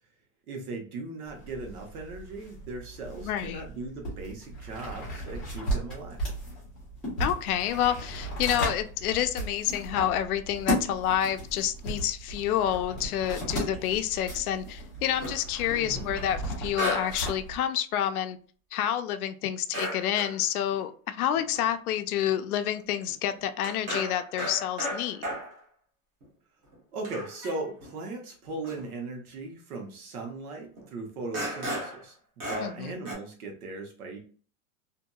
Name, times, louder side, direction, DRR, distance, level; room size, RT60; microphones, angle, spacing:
voice 1, 0.5-6.2 15.8-16.1 26.9-34.2, right 2 dB, 90° right, 1.2 m, -38 dB
sound 1, 1.3-17.6, right 1 dB, ahead, 0.4 m, -36 dB
voice 2, 3.2-3.7 7.2-18.4 18.7-25.3 32.6-32.9, left 11 dB, 80° left, 0.5 m, -28 dB
sound 2, 14.9-16.1 16.7-17.2 17.5-17.6 19.7-20.4 20.7-20.8 21.4-21.7 22.3-22.4 22.5-22.8 23.1-25.6 26.2-26.3 26.7-26.8 27.0-27.9 28.6-28.9 29.7-29.8 30.8-30.9 31.3-32.0 32.4-32.8 33.0-33.1, equal, 30° right, 1.0 m, -35 dB
2.8 x 2.6 x 2.3 m
supercardioid pair, 170°, 43 cm